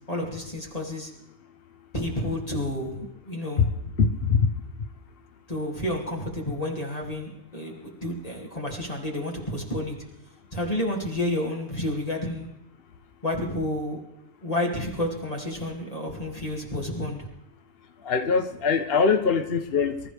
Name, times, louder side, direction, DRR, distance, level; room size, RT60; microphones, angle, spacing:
voice 1, 0.1-1.1 1.9-3.6 5.5-10.0 10.5-12.5 13.2-14.0 14.4-17.2, left 1 dB, 25° left, -2 dB, 2.8 m, -30 dB
voice 2, 4.0-4.5 18.0-20.1, left 5 dB, 45° left, 5 dB, 1.1 m, -22 dB
25.0 x 14.0 x 3.5 m, 0.89 s
omnidirectional pair, 1.4 m